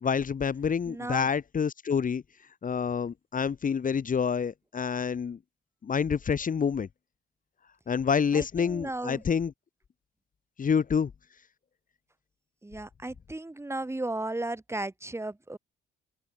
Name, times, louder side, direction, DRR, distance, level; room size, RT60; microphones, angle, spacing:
voice 1, 0.0-2.2 2.6-5.4 5.8-6.9 7.9-9.5 10.6-11.1, left 6 dB, 40° left, 2.6 m, -27 dB
voice 2, 0.9-1.3 8.3-9.2 12.6-15.6, right 2 dB, 15° right, 6.6 m, -35 dB
open air
cardioid pair, 90°, 20 cm